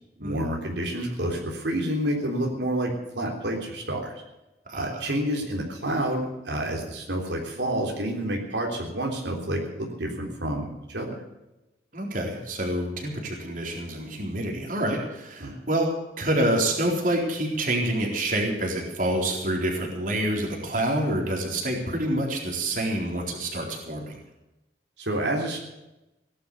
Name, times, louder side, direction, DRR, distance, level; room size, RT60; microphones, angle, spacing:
voice 1, 0.2-4.1 4.7-11.1 15.4-15.6 25.0-25.6, right 1 dB, 80° right, 0 dB, 3.6 m, -29 dB
voice 2, 11.9-15.9 16.2-24.2, right 1 dB, 50° right, 0 dB, 4.0 m, -27 dB
17.5 x 11.5 x 6.9 m, 0.96 s
head